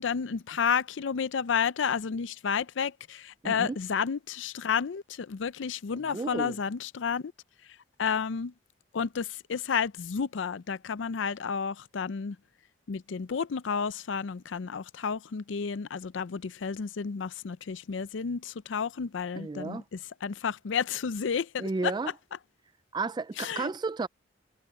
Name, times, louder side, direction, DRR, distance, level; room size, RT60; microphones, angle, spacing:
voice 1, 0.0-7.3 8.0-8.5 8.9-12.4 12.9-21.9 23.4-23.7, left 6 dB, 75° left, 0.5 m, -31 dB
voice 2, 3.4-3.8 6.0-6.6 19.4-19.8 21.6-22.1 22.9-24.1, right 3 dB, 20° right, 0.3 m, -32 dB
head